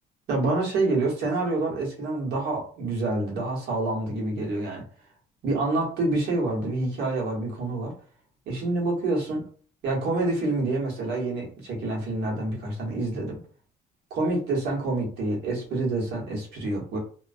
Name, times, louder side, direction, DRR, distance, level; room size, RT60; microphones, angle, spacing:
voice 1, 0.3-4.8 5.4-7.9 8.5-9.4 9.8-13.4 14.1-17.0, right 2 dB, 75° right, -2 dB, 1.1 m, -27 dB
2.3 x 2.2 x 2.4 m, 0.42 s
cardioid pair, 110°, 17 cm